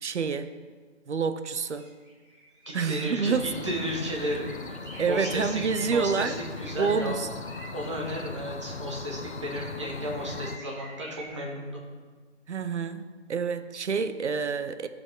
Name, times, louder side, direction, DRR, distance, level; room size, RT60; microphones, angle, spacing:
voice 1, 0.0-0.5 1.1-1.9 2.7-3.7 5.0-6.4 6.8-7.3 12.5-14.9, right 5 dB, 70° right, 11 dB, 0.7 m, -28 dB
sound 1, 1.8-2.9 3.2-3.3 3.8-4.0 4.3-8.1 9.3-9.4 10.1-11.3, right 1 dB, 45° right, 1.9 m, -45 dB
voice 2, 2.7-3.3 3.6-4.8 5.1-7.2 7.7-11.8, equal, 25° right, -2 dB, 1.3 m, -33 dB
sound 2, 3.3-10.6, left 4 dB, 65° left, 0.8 m, -39 dB
15.0 x 5.0 x 3.7 m, 1.5 s
hypercardioid pair, 170°, 36 cm